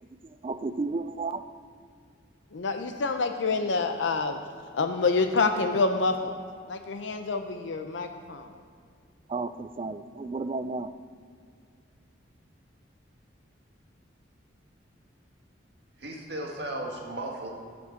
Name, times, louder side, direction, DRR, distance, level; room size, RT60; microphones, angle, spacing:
voice 1, 0.0-1.5 9.3-10.9, right 3 dB, 30° right, 12 dB, 0.3 m, -33 dB
voice 2, 2.5-4.4 4.7-6.4 6.7-8.5, left 3 dB, 75° left, 6 dB, 0.6 m, -27 dB
voice 3, 16.0-17.5, right 1 dB, 60° right, 0 dB, 1.8 m, -35 dB
8.1 x 7.8 x 6.4 m, 2.3 s
head